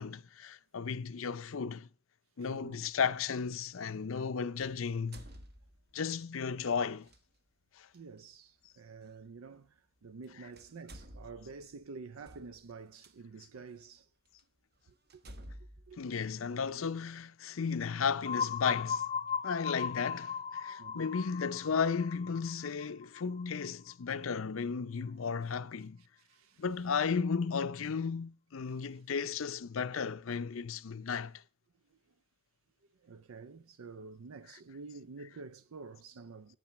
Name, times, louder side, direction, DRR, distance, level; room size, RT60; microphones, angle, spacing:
voice 1, 0.0-1.9 2.4-5.2 5.9-7.1 7.7-7.9 10.3-10.5 16.0-19.0 19.4-26.0 26.6-31.4 34.5-34.6, left 6 dB, 70° left, 0.5 m, -34 dB
voice 2, 2.4-2.8 7.9-14.1 15.1-15.2 15.9-16.0 20.8-21.1 26.2-26.6 28.7-29.0 31.9-32.0 32.9-36.6, right 4 dB, 90° right, 0.5 m, -49 dB
sound 1, 2.5-2.7 4.6-6.1 7.0-7.2 9.1-9.2 10.1-10.2 10.5-13.1 13.8-13.9 14.4-14.5 15.1-16.9, right 1 dB, 50° right, 1.1 m, -52 dB
sound 2, 18.2-23.9, left 7 dB, 25° left, 0.5 m, -37 dB
10.0 x 8.9 x 7.4 m
head